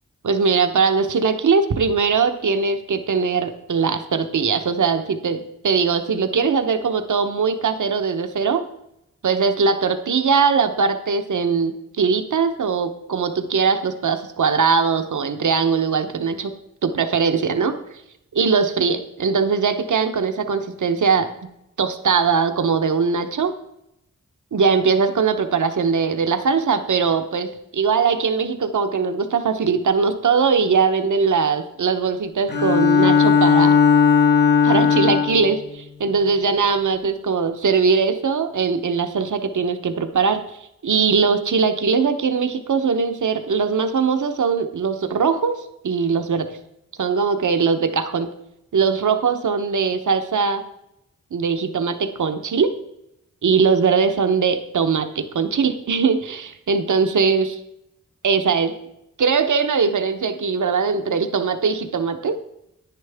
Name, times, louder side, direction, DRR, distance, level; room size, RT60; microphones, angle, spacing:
voice 1, 0.2-8.6 9.2-16.5 16.8-17.8 18.3-21.3 21.8-23.5 24.5-33.8 34.6-40.6 40.8-46.5 47.0-48.3 48.7-50.6 51.3-52.7 53.4-57.6 58.2-58.7 59.2-62.4, right 5 dB, 80° right, 8 dB, 0.9 m, -20 dB
Bowed string instrument, 32.5-35.5, left 6 dB, 35° left, 1.0 m, -16 dB
10.0 x 10.0 x 3.5 m, 0.83 s
wide cardioid pair, 80°, 30 cm